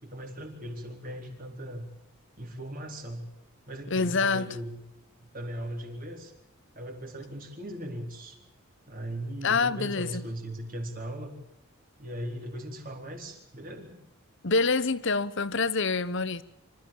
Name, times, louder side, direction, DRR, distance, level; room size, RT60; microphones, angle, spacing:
voice 1, 0.0-1.9 2.4-3.3 3.7-4.8 5.2-6.3 6.7-8.4 8.9-11.3 12.0-14.0, right 1 dB, 40° right, 4.2 m, -38 dB
voice 2, 3.9-4.5 9.4-10.2 14.4-16.4, left 4 dB, 55° left, 1.0 m, -26 dB
26.0 x 14.5 x 8.6 m
head